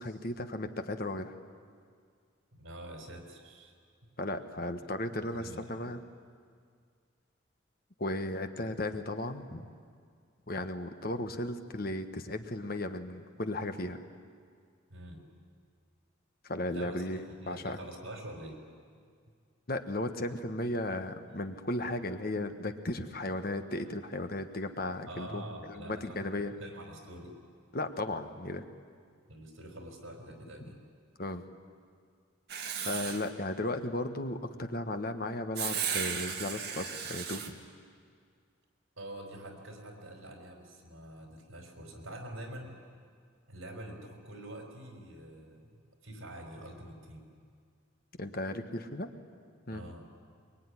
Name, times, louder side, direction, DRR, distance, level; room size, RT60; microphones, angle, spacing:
voice 1, 0.0-1.4 4.2-6.0 8.0-9.7 10.5-14.0 16.4-17.8 19.7-25.4 25.7-26.5 27.7-28.6 31.2-31.4 32.8-37.4 48.2-49.1 49.7-49.8, left 1 dB, 45° left, 8 dB, 1.3 m, -35 dB
voice 2, 2.5-3.7 4.8-5.9 14.9-15.3 16.7-18.6 25.0-27.4 29.3-30.8 39.0-42.8 43.5-45.7 46.0-47.3 49.7-50.1, right 1 dB, 75° right, 4 dB, 4.7 m, -46 dB
Writing, 32.5-33.3 35.6-37.5, right 7 dB, 50° right, 2.0 m, -35 dB
23.0 x 23.0 x 9.9 m, 2.1 s
head